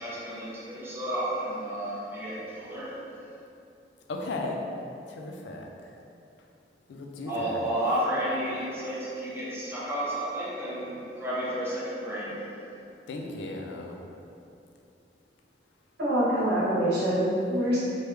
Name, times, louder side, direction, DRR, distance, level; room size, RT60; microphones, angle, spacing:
voice 1, 0.0-3.1 7.2-12.5, right 1 dB, 15° right, -8 dB, 0.5 m, -32 dB
voice 2, 4.1-4.6 5.1-6.0 6.9-7.6 13.1-14.0, left 2 dB, 90° left, 1 dB, 0.4 m, -36 dB
voice 3, 16.0-17.8, right 1 dB, 75° right, -11 dB, 1.3 m, -25 dB
3.2 x 2.2 x 3.1 m, 2.6 s
head